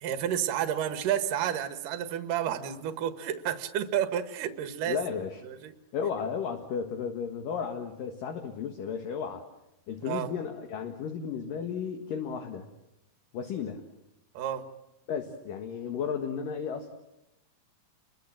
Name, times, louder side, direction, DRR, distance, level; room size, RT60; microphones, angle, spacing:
voice 1, 0.0-5.0 5.4-5.7 10.0-10.3 14.3-14.7, right 10 dB, 60° right, 7 dB, 2.8 m, -30 dB
voice 2, 4.9-5.4 5.9-9.4 9.9-12.7 13.3-13.8 15.1-16.9, left 6 dB, 60° left, 4 dB, 2.9 m, -34 dB
29.5 x 23.0 x 7.7 m, 0.92 s
omnidirectional pair, 5.1 m